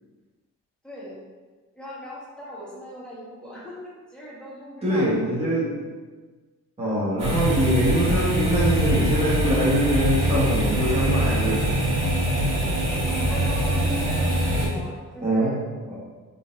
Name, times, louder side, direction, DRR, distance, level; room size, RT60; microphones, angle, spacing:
voice 1, 1.7-5.3 13.1-15.6, equal, 5° left, -8 dB, 1.3 m, -38 dB
voice 2, 4.8-5.7 6.8-11.7 15.2-15.5 15.9-16.0, right 1 dB, 20° right, -9 dB, 1.5 m, -23 dB
sound 1, 7.2-14.7, right 1 dB, 60° right, 1.4 m, -23 dB
3.8 x 2.8 x 2.6 m, 1.4 s
cardioid pair, 90°, 30 cm